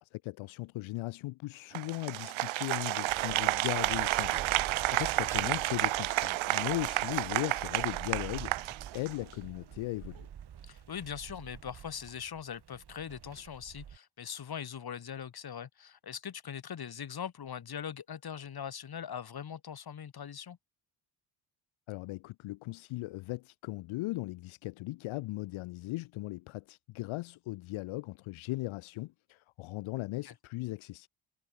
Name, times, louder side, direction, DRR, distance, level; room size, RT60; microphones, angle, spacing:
voice 1, 0.0-10.3 21.9-31.1, left 19 dB, 85° left, 1.3 m, -38 dB
Applause, 1.7-9.3, right 17 dB, 80° right, 1.5 m, -31 dB
sound 1, 3.1-14.0, right 9 dB, 55° right, 4.7 m, -47 dB
voice 2, 10.6-20.6 30.2-30.3, left 8 dB, 50° left, 6.1 m, -41 dB
cardioid pair, 80°, 47 cm